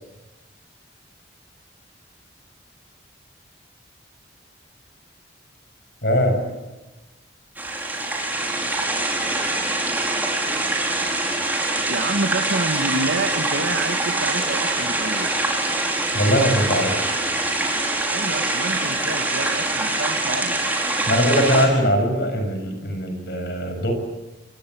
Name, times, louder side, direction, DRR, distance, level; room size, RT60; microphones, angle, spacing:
voice 1, 6.0-6.5 16.1-16.9 21.1-23.9, equal, 60° left, 6 dB, 6.5 m, -21 dB
sound 1, 7.6-21.7, right 2 dB, 10° right, 4.6 m, -24 dB
voice 2, 11.9-15.3 18.1-20.6, right 2 dB, 85° right, 7 dB, 1.8 m, -28 dB
25.0 x 21.5 x 7.7 m, 1.1 s
head